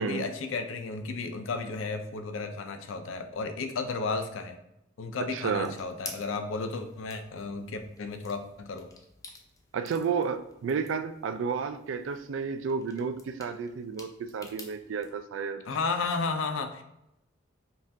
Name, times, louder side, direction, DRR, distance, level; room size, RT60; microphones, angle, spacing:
voice 1, 0.0-4.6 5.0-8.9 15.7-16.8, left 4 dB, 75° left, 7 dB, 0.4 m, -33 dB
voice 2, 5.3-5.8 9.7-15.6, right 5 dB, 70° right, 10 dB, 0.3 m, -31 dB
sound 1, 5.4-15.1, left 3 dB, 15° left, 0.4 m, -50 dB
5.4 x 2.4 x 2.6 m, 0.85 s
head